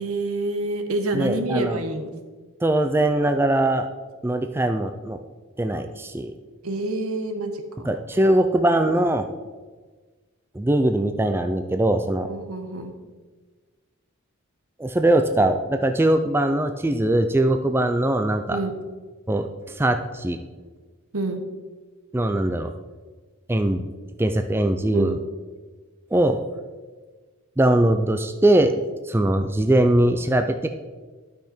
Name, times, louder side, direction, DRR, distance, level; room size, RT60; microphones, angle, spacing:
voice 1, 0.0-2.1 6.6-7.9 12.2-12.9 18.5-18.7 21.1-21.4 24.9-25.2, right 2 dB, 80° right, 6 dB, 1.2 m, -27 dB
voice 2, 1.1-1.8 2.6-3.9 4.2-5.2 5.6-6.3 7.8-9.2 10.5-12.3 14.8-18.6 19.3-20.4 22.1-22.7 23.5-23.8 24.2-25.2 26.1-26.4 27.6-28.7 29.0-30.7, right 1 dB, 10° right, 6 dB, 0.3 m, -21 dB
12.0 x 5.9 x 4.3 m, 1.4 s
head